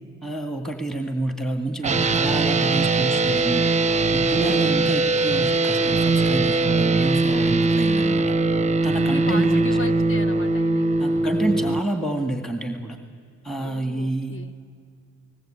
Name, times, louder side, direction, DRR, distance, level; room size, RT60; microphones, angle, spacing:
voice 1, 0.2-3.6 4.1-8.2 8.8-9.6 11.0-13.0 13.4-14.4, right 2 dB, ahead, 6 dB, 2.0 m, -28 dB
sound 1, 1.8-11.8, right 3 dB, 25° right, 0.8 m, -21 dB
voice 2, 8.9-11.0 13.5-14.5, left 3 dB, 45° left, 9 dB, 1.8 m, -36 dB
29.0 x 20.0 x 8.9 m, 2.3 s
cardioid pair, 90°, 30 cm